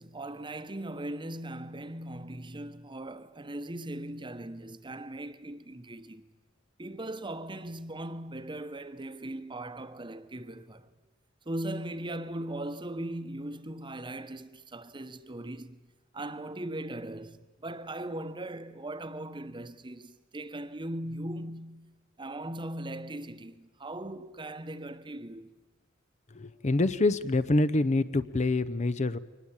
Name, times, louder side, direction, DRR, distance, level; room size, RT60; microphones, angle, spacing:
voice 1, 0.0-6.2 6.8-10.9 11.5-15.8 16.1-25.5, right 1 dB, 25° right, 1.0 m, -39 dB
voice 2, 26.3-29.2, left 2 dB, 35° left, 0.7 m, -26 dB
23.0 x 19.5 x 8.8 m
head